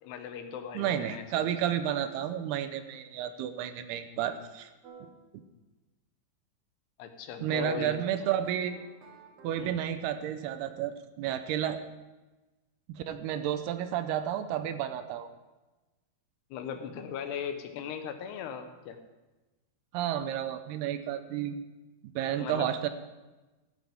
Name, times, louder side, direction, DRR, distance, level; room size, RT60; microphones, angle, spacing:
voice 1, 0.0-1.5 7.0-8.0 9.6-9.8 16.5-19.0 22.4-22.7, left 8 dB, 90° left, 7 dB, 3.1 m, -38 dB
voice 2, 0.7-4.7 7.4-8.8 9.4-11.8 12.9-15.3 19.9-21.6 22.2-22.9, right 10 dB, 80° right, 10 dB, 2.7 m, -31 dB
sound 1, 4.8-5.1 7.6-10.0, right 5 dB, 55° right, 2.1 m, -51 dB
14.5 x 13.5 x 3.6 m, 1.1 s
omnidirectional pair, 4.6 m